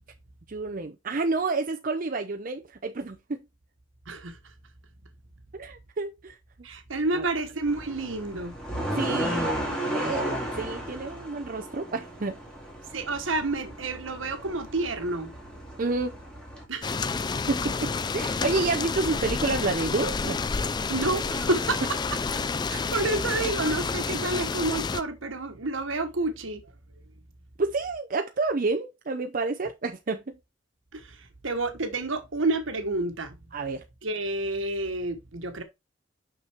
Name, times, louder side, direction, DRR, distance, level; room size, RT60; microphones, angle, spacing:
voice 1, 0.5-3.4 5.5-6.4 7.1-7.2 8.9-9.5 9.9-12.4 15.8-16.2 17.5-20.4 27.6-30.4 33.5-33.8, right 3 dB, 45° right, 0.6 m, -29 dB
voice 2, 4.1-4.4 6.6-8.6 12.9-15.3 16.7-17.0 20.9-21.8 22.1-22.2 22.7-26.6 30.9-33.4 34.0-35.6, right 2 dB, 75° right, 1.3 m, -29 dB
sound 1, 7.7-16.6, right 1 dB, 5° left, 2.3 m, -34 dB
sound 2, 16.8-25.0, left 4 dB, 20° left, 0.3 m, -29 dB
5.9 x 5.9 x 3.5 m
head